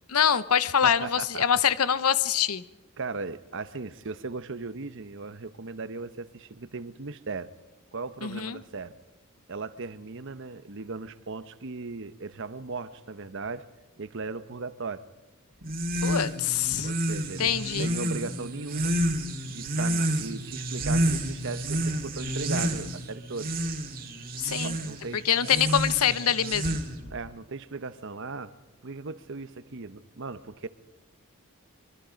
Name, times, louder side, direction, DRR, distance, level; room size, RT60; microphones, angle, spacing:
voice 1, 0.1-2.6 8.2-8.6 16.0-16.9 17.4-17.9 24.4-24.8 25.2-26.8, left 8 dB, 85° left, 15 dB, 0.8 m, -25 dB
voice 2, 0.8-1.4 3.0-7.5 7.9-8.9 9.5-13.7 14.0-15.1 16.8-19.0 19.4-23.5 24.4-25.5 27.1-28.5 28.8-30.7, right 4 dB, 60° right, 13 dB, 0.9 m, -37 dB
sound 1, 15.6-27.1, right 1 dB, 40° right, 2.2 m, -30 dB
24.5 x 23.0 x 5.2 m, 1.0 s
head